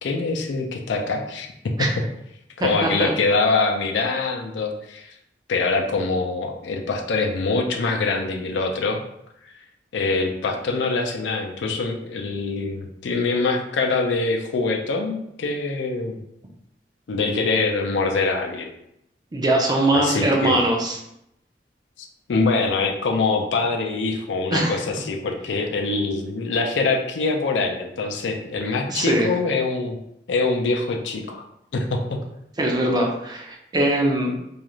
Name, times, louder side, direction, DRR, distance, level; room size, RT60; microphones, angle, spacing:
voice 1, 0.0-1.5 1.8-1.9 2.6-5.1 5.5-9.0 9.4-9.5 9.9-16.2 17.1-18.7 19.9-20.6 22.0-30.0 30.3-31.4 31.7-32.2, left 3 dB, 85° left, 3 dB, 0.4 m, -24 dB
voice 2, 2.6-3.1 19.3-21.0 24.5-24.8 28.9-29.3 32.6-34.4, right 1 dB, 25° right, 0 dB, 0.4 m, -21 dB
2.4 x 2.4 x 3.0 m, 0.79 s
head